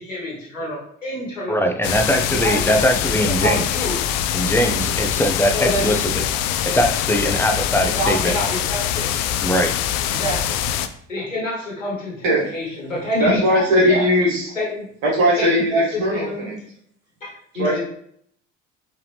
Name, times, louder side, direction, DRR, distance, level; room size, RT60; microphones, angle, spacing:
voice 1, 0.0-1.7 2.3-3.9 5.5-5.9 6.7-6.8 7.9-9.1 10.1-10.6 11.1-14.0 14.5-14.8 15.4-16.5 17.2-17.8, equal, 90° left, -4 dB, 1.5 m, -27 dB
voice 2, 1.5-3.7 4.3-6.2 6.6-8.3 9.4-9.7, equal, 5° left, 4 dB, 0.7 m, -21 dB
sound 1, 1.8-10.9, left 10 dB, 60° left, 0.5 m, -23 dB
voice 3, 13.2-14.5 15.0-16.6 17.5-17.8, equal, 60° right, -4 dB, 1.7 m, -19 dB
4.7 x 3.4 x 3.2 m, 0.65 s
figure-of-eight pair, 55°, 38 cm